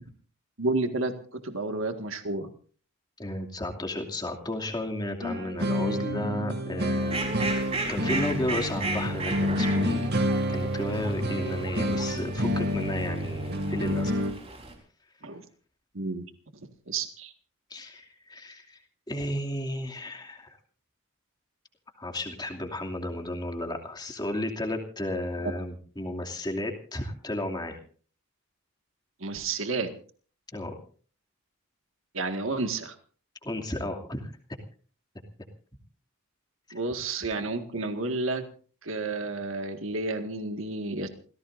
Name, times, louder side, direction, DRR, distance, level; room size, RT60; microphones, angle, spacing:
voice 1, 0.6-2.5 15.2-15.4 15.9-16.2 16.9-17.3 29.2-29.9 32.1-33.0 36.7-38.5 38.8-41.1, right 3 dB, 65° right, 7 dB, 1.9 m, -31 dB
voice 2, 3.2-10.0 10.5-14.1 17.7-18.8 19.1-20.6 22.0-27.8 30.5-30.7 33.4-34.3 36.7-36.8, left 1 dB, 20° left, 2 dB, 2.6 m, -33 dB
sound 1, 5.2-14.3, equal, 50° right, 2.3 m, -28 dB
Fowl, 6.9-14.7, right 3 dB, 25° right, 4.2 m, -36 dB
28.5 x 16.5 x 2.6 m, 0.42 s
head